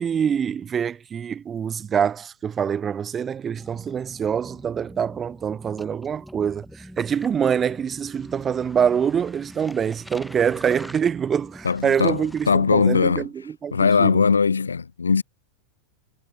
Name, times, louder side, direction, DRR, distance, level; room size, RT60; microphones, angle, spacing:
voice 1, 0.0-13.3 13.6-14.1, right 7 dB, 20° right, 0.5 m, -25 dB
sound 1, 3.5-13.1, equal, ahead, 2.2 m, -44 dB
voice 2, 11.6-13.3 13.7-15.2, left 5 dB, 75° left, 0.4 m, -20 dB
figure-of-eight pair, 90°, 0 cm